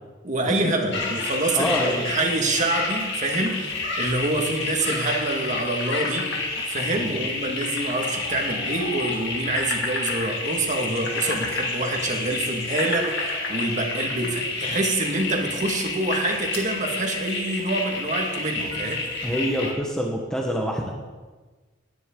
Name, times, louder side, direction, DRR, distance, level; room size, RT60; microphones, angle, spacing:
voice 1, 0.2-6.3 6.7-19.0, right 2 dB, 40° right, 1 dB, 2.0 m, -26 dB
sound 1, 0.9-19.7, left 3 dB, 60° left, 2.4 m, -29 dB
voice 2, 1.5-2.0 6.9-7.3 19.2-21.0, equal, 5° left, -1 dB, 1.3 m, -26 dB
18.5 x 10.0 x 3.9 m, 1.3 s
head